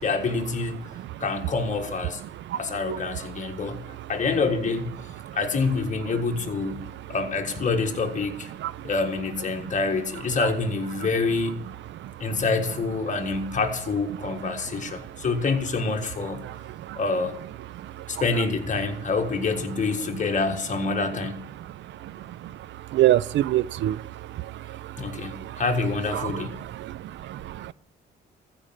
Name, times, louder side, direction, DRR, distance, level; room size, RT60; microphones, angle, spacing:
voice 1, 0.0-0.8 1.2-2.2 2.5-4.9 5.3-6.8 7.1-8.5 8.8-11.6 12.2-16.4 17.0-17.4 18.1-21.4 25.0-26.6, left 4 dB, 40° left, 1.6 m, -26 dB
voice 2, 22.9-24.0 26.2-26.3 26.8-26.9 27.3-27.7, right 13 dB, 70° right, 0.4 m, -23 dB
14.5 x 5.3 x 7.4 m
cardioid pair, 90°, 20 cm